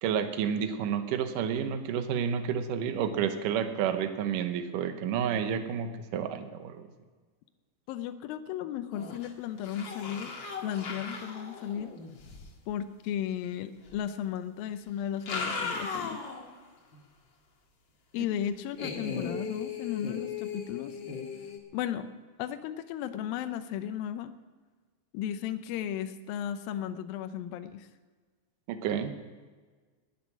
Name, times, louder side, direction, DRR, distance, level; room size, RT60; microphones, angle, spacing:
voice 1, 0.0-6.9 28.7-29.1, right 8 dB, 80° right, 8 dB, 1.9 m, -30 dB
voice 2, 7.9-10.3 10.6-11.9 12.7-16.2 18.1-21.0 21.7-22.1 22.4-24.3 25.1-27.9, left 10 dB, 85° left, 9 dB, 2.0 m, -35 dB
sound 1, 8.9-9.3 9.6-12.5 13.9-14.0 15.0-16.5 16.9-17.0 18.8-21.6, left 5 dB, 60° left, 1.1 m, -37 dB
20.0 x 9.4 x 6.1 m, 1.4 s
omnidirectional pair, 5.1 m